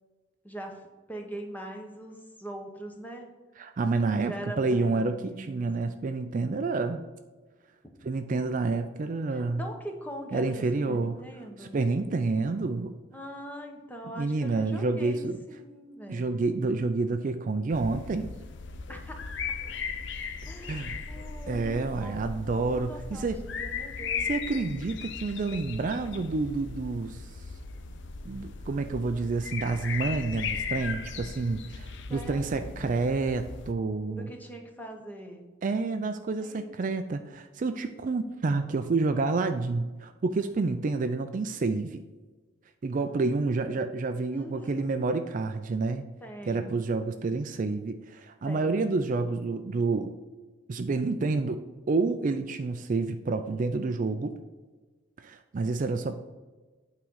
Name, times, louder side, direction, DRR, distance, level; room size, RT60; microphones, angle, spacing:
voice 1, 0.4-3.3 4.1-6.1 9.3-11.8 13.1-16.4 18.9-19.5 20.4-22.4 22.7-24.3 32.1-32.9 34.1-35.4 36.4-36.8 43.0-43.6 44.2-45.1 46.2-46.8 48.4-48.9, right 1 dB, 10° left, 2 dB, 1.0 m, -42 dB
voice 2, 3.6-7.0 8.0-9.6 10.3-11.2 11.6-12.9 14.2-15.4 16.1-18.3 20.7-21.0 21.5-23.4 24.3-27.3 28.2-34.3 35.6-42.0 42.8-46.0 46.5-50.1 50.7-54.3 55.2-56.1, right 3 dB, 40° right, 8 dB, 0.4 m, -29 dB
sound 1, 17.7-33.7, left 5 dB, 60° left, 0.6 m, -37 dB
8.8 x 3.8 x 6.2 m, 1.3 s
head